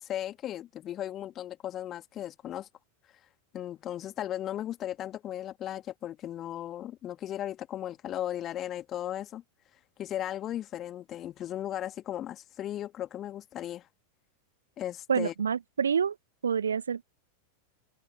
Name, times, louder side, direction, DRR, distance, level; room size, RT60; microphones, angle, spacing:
voice 1, 0.0-2.7 3.5-9.4 10.0-13.8 14.8-15.3, left 12 dB, 30° left, 2.4 m, -36 dB
voice 2, 15.1-16.1 16.4-17.0, right 7 dB, 70° right, 1.6 m, -27 dB
open air
figure-of-eight pair, 90°, 0 cm